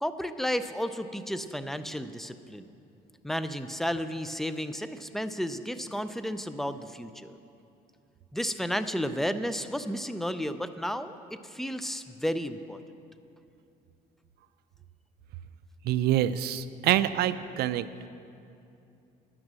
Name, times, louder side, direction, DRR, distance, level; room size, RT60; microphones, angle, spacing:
voice 1, 0.0-2.7 3.2-7.3 8.3-12.8, equal, ahead, 11 dB, 0.4 m, -32 dB
voice 2, 15.9-17.9, right 12 dB, 70° right, 14 dB, 0.4 m, -26 dB
10.5 x 6.1 x 7.5 m, 2.6 s
cardioid pair, 110°, 17 cm